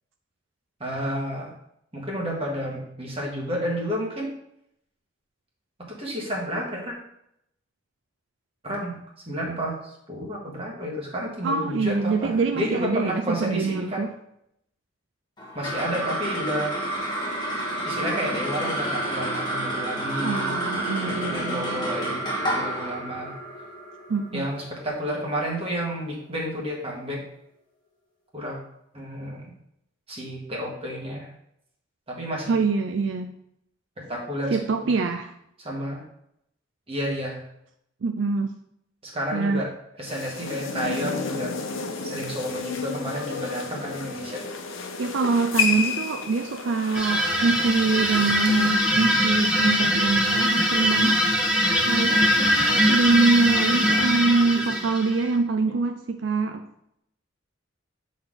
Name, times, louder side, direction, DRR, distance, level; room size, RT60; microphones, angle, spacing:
voice 1, 0.8-1.5 1.9-4.3 5.8-6.9 8.6-9.0 9.2-14.0 15.5-16.8 17.8-20.5 21.0-23.4 24.3-27.2 28.3-28.6 28.9-29.5 30.1-31.3 32.1-32.6 34.0-34.9 35.6-36.0 36.9-37.4 39.0-39.7 40.0-41.5 42.0-44.6 52.6-52.8 54.5-54.7 55.6-55.7, equal, 30° right, -3 dB, 1.5 m, -31 dB
voice 2, 11.4-14.1 20.2-21.9 24.1-24.4 32.5-33.3 34.5-35.3 38.0-38.5 39.3-39.7 45.0-51.2 51.9-56.6, right 4 dB, 65° right, 7 dB, 0.4 m, -24 dB
sound 1, 15.4-26.0, right 1 dB, 20° left, 1.2 m, -30 dB
sound 2, 40.1-48.7, left 4 dB, 85° left, 0.8 m, -31 dB
sound 3, 46.9-55.3, equal, 5° right, 1.0 m, -22 dB
7.8 x 4.2 x 3.7 m, 0.75 s
head